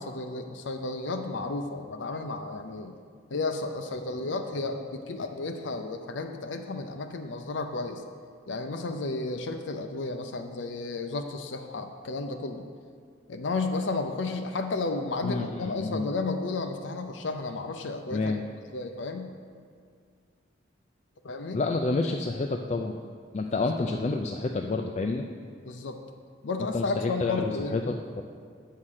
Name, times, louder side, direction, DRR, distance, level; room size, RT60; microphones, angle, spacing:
voice 1, 0.0-2.9 3.3-8.0 8.5-12.7 13.3-18.4 18.7-19.3 21.2-21.6 25.6-26.0 26.4-27.8, left 3 dB, 80° left, 5 dB, 0.6 m, -32 dB
voice 2, 15.2-16.1 18.1-18.4 21.5-23.0 23.3-25.3 26.7-28.2, left 3 dB, 35° left, 2 dB, 0.3 m, -29 dB
8.8 x 5.6 x 6.4 m, 2.1 s
head